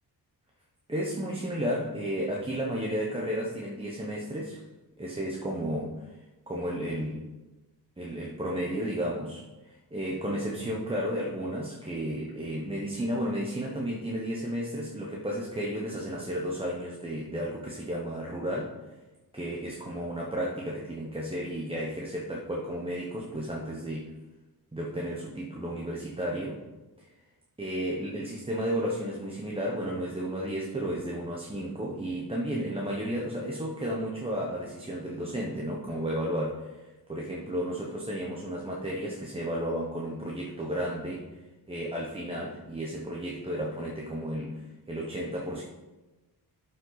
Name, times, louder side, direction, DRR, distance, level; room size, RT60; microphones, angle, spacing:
voice 1, 0.9-4.6 5.0-6.2 6.5-7.3 8.0-18.7 19.3-24.2 24.7-26.6 27.0-27.1 27.6-36.8 37.1-41.4 41.7-45.6, equal, 15° right, -3 dB, 0.9 m, -33 dB
12.0 x 5.5 x 4.0 m, 1.1 s
wide cardioid pair, 160°, 37 cm